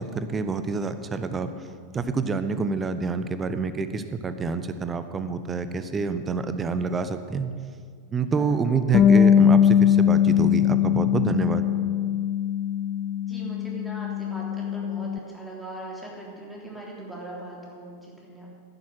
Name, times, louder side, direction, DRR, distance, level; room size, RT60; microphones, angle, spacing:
voice 1, 0.0-1.5 1.9-7.5 8.1-11.7, right 4 dB, 20° right, 10 dB, 0.8 m, -27 dB
voice 2, 8.3-8.7 13.3-18.5, right 2 dB, ahead, -4 dB, 3.5 m, -40 dB
Bass guitar, 8.9-15.2, left 9 dB, 30° left, 0.5 m, -21 dB
10.5 x 10.0 x 7.6 m, 2.1 s
figure-of-eight pair, 90°, 0 cm